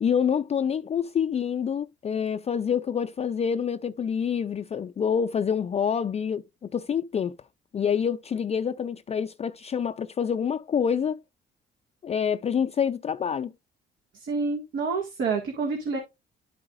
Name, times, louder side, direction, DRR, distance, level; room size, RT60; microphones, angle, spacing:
voice 1, 0.0-7.3 7.7-11.2 12.0-13.5, left 7 dB, 30° left, 0.4 m, -27 dB
voice 2, 14.1-16.0, right 4 dB, 80° right, 1.9 m, -28 dB
11.5 x 4.7 x 2.5 m
cardioid pair, 90°, 20 cm